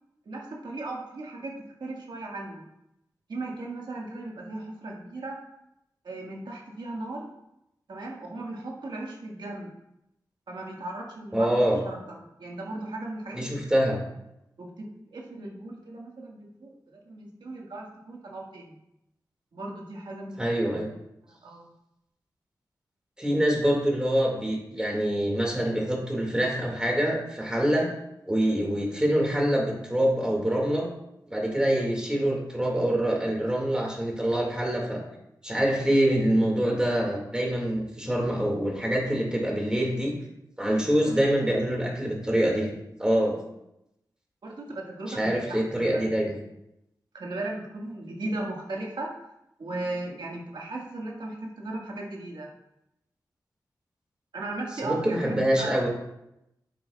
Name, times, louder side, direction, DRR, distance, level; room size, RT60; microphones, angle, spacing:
voice 1, 0.2-2.6 3.3-5.4 6.0-7.3 7.9-9.7 10.5-13.6 14.6-18.8 19.5-20.7 21.3-21.7 40.8-41.2 44.4-45.6 45.9-46.0 47.1-49.1 49.6-52.5 54.3-55.8, right 2 dB, 80° right, -2 dB, 1.7 m, -37 dB
voice 2, 11.3-11.8 13.3-14.0 20.4-20.9 23.2-27.9 28.3-30.9 31.3-35.0 35.4-40.1 40.6-42.7 43.0-43.4 45.1-46.4 54.8-55.9, right 1 dB, 10° right, -1 dB, 2.1 m, -25 dB
9.0 x 7.8 x 2.4 m, 0.85 s
wide cardioid pair, 100°, 8 cm